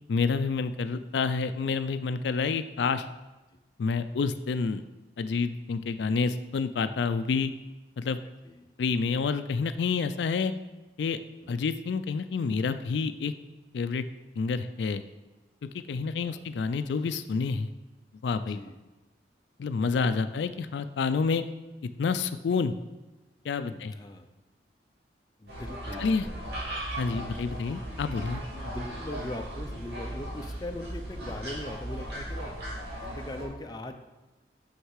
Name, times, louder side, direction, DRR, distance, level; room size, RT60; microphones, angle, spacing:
voice 1, 0.1-3.1 3.8-4.8 5.2-7.5 8.0-8.2 8.8-10.5 11.0-11.2 11.5-13.3 13.7-14.0 14.4-15.0 15.7-17.7 18.2-18.6 19.6-21.4 22.0-22.7 23.4-23.9 26.0-26.3 27.0-28.4, left 5 dB, 80° left, 11 dB, 0.4 m, -28 dB
voice 2, 15.9-16.4 18.5-18.8 19.8-20.3 23.6-24.3 25.4-26.3 27.1-27.6 28.6-32.6 33.1-33.9, left 1 dB, 20° left, 5 dB, 0.5 m, -41 dB
sound 1, 25.5-33.4, right 1 dB, 65° right, 2.5 m, -37 dB
6.5 x 6.5 x 4.7 m, 1.1 s
head